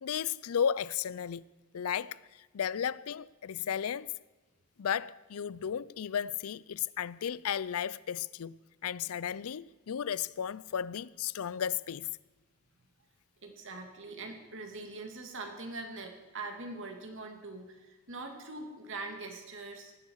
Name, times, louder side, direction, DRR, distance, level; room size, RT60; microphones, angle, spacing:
voice 1, 0.0-1.4 1.7-2.2 2.5-4.1 4.8-8.5 8.8-12.1, left 8 dB, 75° left, 0.4 m, -34 dB
voice 2, 13.4-19.9, right 3 dB, 55° right, 2.4 m, -42 dB
19.0 x 15.5 x 4.7 m
head